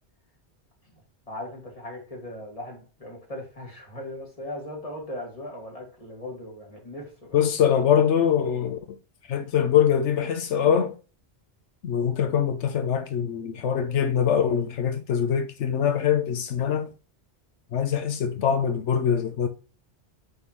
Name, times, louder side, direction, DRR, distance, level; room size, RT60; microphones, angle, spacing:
voice 1, 1.3-7.4, left 1 dB, 30° left, 2.5 m, -38 dB
voice 2, 7.3-8.8 9.3-10.9 11.8-16.9 17.7-19.5, left 8 dB, 85° left, 1.0 m, -23 dB
9.2 x 3.9 x 3.1 m
omnidirectional pair, 1.2 m